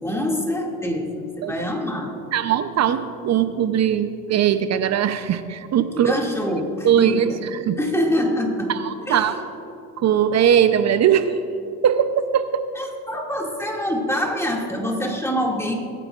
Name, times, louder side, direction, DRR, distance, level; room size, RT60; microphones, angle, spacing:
voice 1, 0.0-2.1 5.9-7.4 7.8-8.7 9.1-9.4 12.8-15.7, left 1 dB, 5° left, -1 dB, 2.3 m, -25 dB
voice 2, 2.3-6.2 6.8-7.8 8.7-9.4 10.0-11.4 11.8-12.7, right 9 dB, 40° right, 10 dB, 0.7 m, -20 dB
22.0 x 10.0 x 2.5 m, 2.5 s
supercardioid pair, 90°, 41 cm